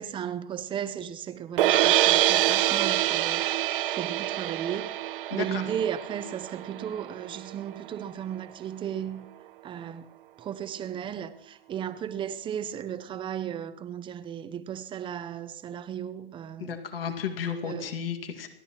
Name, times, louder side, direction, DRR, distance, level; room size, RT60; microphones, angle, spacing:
voice 1, 0.0-9.2 9.6-10.0 10.4-16.8 17.6-17.9, right 9 dB, 15° right, 0.7 m, -35 dB
sound 1, 1.6-7.7, right 13 dB, 60° right, 0.6 m, -25 dB
voice 2, 5.3-5.6 16.6-18.5, left 7 dB, 65° left, 2.0 m, -33 dB
28.0 x 13.0 x 3.0 m
hypercardioid pair, 115°, 30 cm